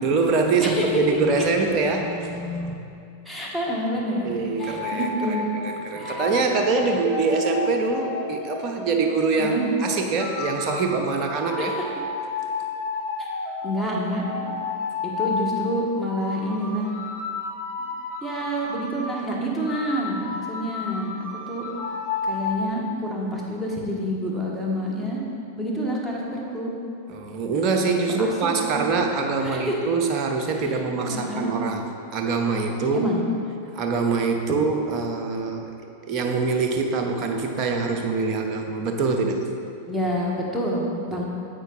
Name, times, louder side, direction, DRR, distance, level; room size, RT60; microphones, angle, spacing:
voice 1, 0.0-2.8 4.2-11.7 27.1-31.8 32.1-33.1 33.8-35.7 36.1-39.4 41.1-41.2, right 4 dB, 35° right, 3 dB, 0.8 m, -24 dB
voice 2, 3.2-5.5 6.0-6.2 6.9-7.0 9.4-9.6 11.6-11.8 13.2-13.3 13.6-14.6 15.0-16.9 18.2-21.1 21.5-21.6 22.2-25.2 25.6-26.7 28.1-28.9 29.4-29.7 30.5-30.8 31.1-31.5 32.9-33.2 39.8-41.2, equal, ahead, -5 dB, 1.3 m, -28 dB
sound 1, 4.6-5.5 6.0-9.7 10.2-15.5 16.0-19.3 19.7-22.5, left 4 dB, 55° left, 1.6 m, -32 dB
8.0 x 5.5 x 3.9 m, 2.5 s
figure-of-eight pair, 90°, 0 cm